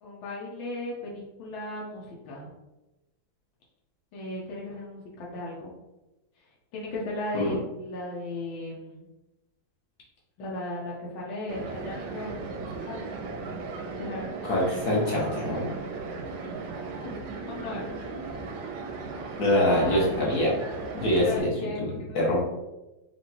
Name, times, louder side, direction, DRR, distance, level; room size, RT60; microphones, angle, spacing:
voice 1, 0.0-2.5 4.1-5.8 6.7-9.1 10.4-13.1 14.0-14.3 17.0-17.9 19.6-20.4 21.2-22.4, left 2 dB, 80° left, -4 dB, 1.5 m, -36 dB
sound 1, 11.5-21.4, right 4 dB, 75° right, 1.1 m, -37 dB
voice 2, 14.4-15.7 19.4-20.5 20.9-21.5 21.9-22.4, left 1 dB, 55° left, -4 dB, 1.5 m, -24 dB
4.7 x 2.6 x 2.8 m, 1.0 s
omnidirectional pair, 2.2 m